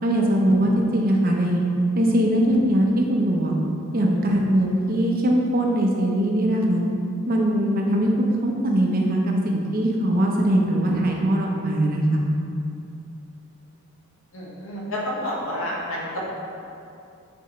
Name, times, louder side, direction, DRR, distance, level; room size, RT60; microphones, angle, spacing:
voice 1, 0.0-1.6 1.9-3.6 3.9-6.8 7.3-12.2, right 1 dB, 45° right, -1 dB, 0.8 m, -21 dB
voice 2, 14.3-16.0, left 1 dB, 75° left, -5 dB, 1.5 m, -29 dB
7.9 x 4.7 x 3.2 m, 2.6 s
head